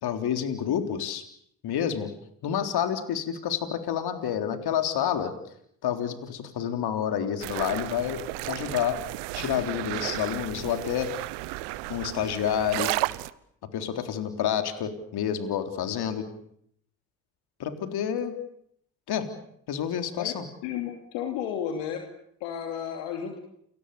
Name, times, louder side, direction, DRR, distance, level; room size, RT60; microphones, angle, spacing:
voice 1, 0.0-1.2 1.6-2.1 2.4-5.3 5.8-9.0 9.4-11.1 11.9-12.9 13.7-16.3 17.6-18.3 19.1-19.3 19.7-20.4, left 9 dB, 60° left, 7 dB, 3.8 m, -29 dB
sound 1, 7.4-13.3, right 20 dB, 75° right, 1.1 m, -33 dB
voice 2, 20.6-22.1 22.4-23.4, left 9 dB, 80° left, 4 dB, 2.8 m, -32 dB
29.5 x 23.5 x 6.9 m, 0.70 s
hypercardioid pair, 55°, 42 cm